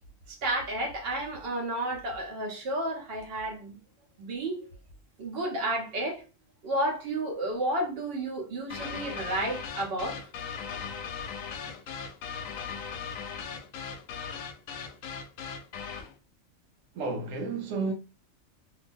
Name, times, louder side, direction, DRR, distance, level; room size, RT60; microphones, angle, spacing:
voice 1, 0.3-3.8 4.2-4.7 5.2-6.2 6.6-10.2, right 1 dB, 50° right, 1.1 m, -31 dB
sound 1, 8.7-16.1, left 6 dB, 90° left, 1.0 m, -38 dB
voice 2, 16.9-17.9, right 3 dB, 80° right, 1.0 m, -31 dB
2.8 x 2.5 x 3.4 m
omnidirectional pair, 1.3 m